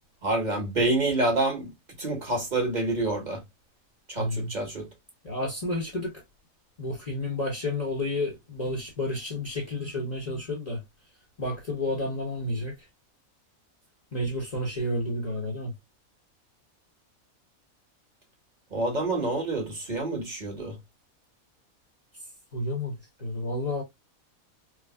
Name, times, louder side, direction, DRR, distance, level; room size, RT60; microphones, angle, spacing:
voice 1, 0.2-1.7 2.0-3.4 4.1-4.9 18.7-20.7, right 2 dB, 35° right, 1.4 m, -27 dB
voice 2, 4.2-4.5 5.2-6.1 6.8-10.8 11.4-12.7 14.1-15.7 22.5-23.0 23.2-23.8, left 1 dB, 30° left, 1.1 m, -30 dB
4.8 x 2.1 x 2.2 m
omnidirectional pair, 1.5 m